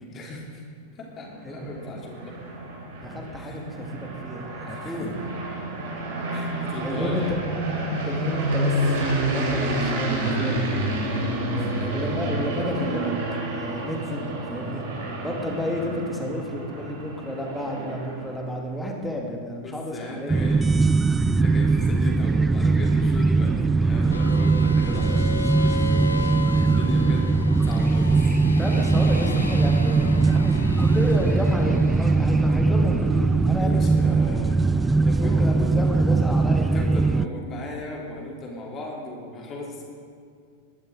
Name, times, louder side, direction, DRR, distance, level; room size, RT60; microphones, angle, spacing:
voice 1, 0.1-0.6 1.0-2.4 3.4-3.6 4.7-5.1 6.3-7.3 11.6-11.7 19.6-23.5 23.8-28.1 29.8-29.9 33.6-36.2 36.6-39.9, left 1 dB, 25° left, -2 dB, 3.6 m, -37 dB
sound 1, 1.3-18.4, right 1 dB, 55° right, 3.4 m, -29 dB
voice 2, 1.4-1.9 3.0-5.1 6.8-7.4 8.0-10.7 11.5-13.1 13.5-14.9 15.2-20.3 28.6-34.2 35.2-36.7, left 1 dB, 5° left, 0 dB, 2.5 m, -31 dB
sound 2, 20.3-37.3, right 3 dB, 10° right, 0.4 m, -20 dB
sound 3, 24.1-34.9, left 2 dB, 80° left, 0.8 m, -36 dB
20.5 x 12.5 x 4.0 m, 2.2 s
figure-of-eight pair, 90°, 0 cm